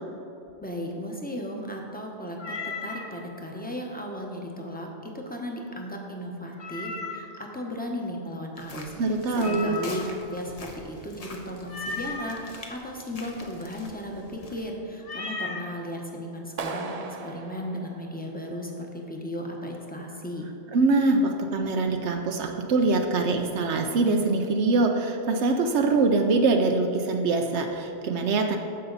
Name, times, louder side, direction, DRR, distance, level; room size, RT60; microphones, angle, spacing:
voice 1, 0.6-10.0 10.3-17.0 17.2-20.5, equal, 10° left, 0 dB, 1.0 m, -36 dB
Meow, 2.4-3.1 6.6-7.4 9.4-10.2 11.7-12.4 15.0-15.7, left 3 dB, 60° left, 1.0 m, -35 dB
sound 1, 8.6-14.6, left 2 dB, 35° left, 1.0 m, -45 dB
voice 2, 9.0-9.8 20.7-28.6, right 3 dB, 80° right, 4 dB, 1.0 m, -23 dB
Clapping, 16.6-18.6, right 4 dB, 50° right, 0.5 m, -37 dB
14.5 x 5.6 x 4.0 m, 2.8 s
omnidirectional pair, 1.2 m